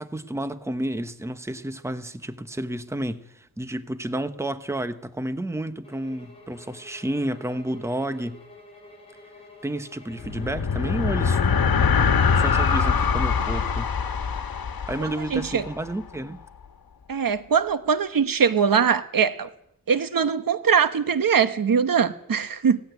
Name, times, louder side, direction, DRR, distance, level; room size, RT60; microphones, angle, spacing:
voice 1, 0.0-8.4 9.6-11.4 12.3-13.9 14.9-16.4, right 1 dB, 10° right, 1.0 m, -31 dB
sound 1, 5.8-11.6, left 2 dB, 15° left, 6.9 m, -49 dB
sound 2, 10.1-15.8, left 6 dB, 85° left, 1.6 m, -23 dB
voice 2, 15.0-15.6 17.1-19.5 19.9-22.8, right 6 dB, 70° right, 1.2 m, -22 dB
17.0 x 16.0 x 9.4 m
wide cardioid pair, 150°, 35 cm